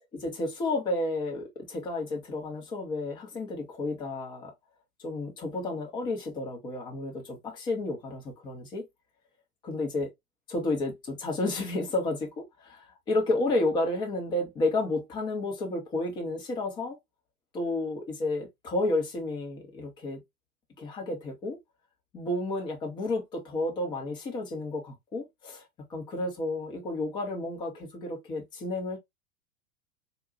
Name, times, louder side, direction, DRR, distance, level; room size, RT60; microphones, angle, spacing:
voice 1, 0.1-4.5 5.0-8.8 9.6-10.1 10.5-17.0 17.5-20.2 20.8-21.6 22.1-25.6 25.9-29.0, left 2 dB, 10° left, 0.4 m, -31 dB
3.8 x 2.1 x 2.4 m
figure-of-eight pair, 95°, 42 cm